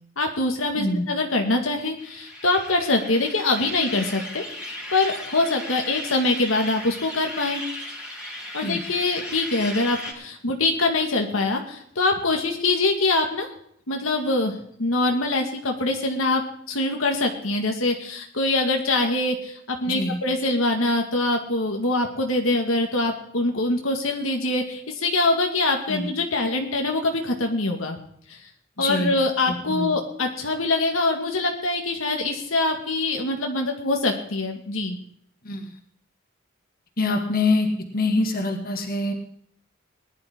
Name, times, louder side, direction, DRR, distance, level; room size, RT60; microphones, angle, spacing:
voice 1, 0.2-7.6 8.5-13.5 13.9-16.4 16.7-28.0 28.3-28.4 28.8-35.0, left 2 dB, 85° left, 2 dB, 2.0 m, -24 dB
voice 2, 0.7-1.0 8.6-8.8 19.8-20.2 25.9-26.1 28.8-29.1 29.5-29.9 35.4-35.7 37.0-37.7 37.9-39.1, left 2 dB, 45° left, 2 dB, 2.1 m, -25 dB
sound 1, 2.0-10.1, left 1 dB, 5° right, 3.6 m, -36 dB
19.5 x 11.5 x 3.8 m, 0.68 s
head